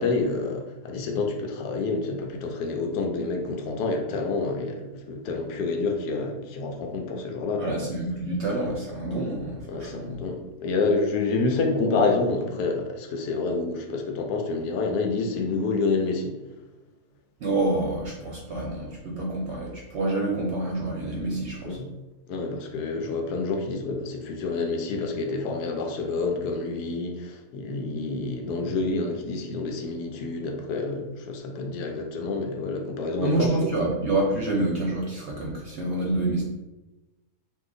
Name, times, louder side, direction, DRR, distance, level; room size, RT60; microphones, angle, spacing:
voice 1, 0.0-7.9 9.7-16.4 21.6-21.9 22.3-33.5, left 3 dB, 85° left, 2 dB, 1.1 m, -28 dB
voice 2, 7.6-10.2 17.4-21.8 33.2-36.4, right 2 dB, 60° right, -3 dB, 0.8 m, -27 dB
2.8 x 2.4 x 3.7 m, 1.1 s
omnidirectional pair, 1.6 m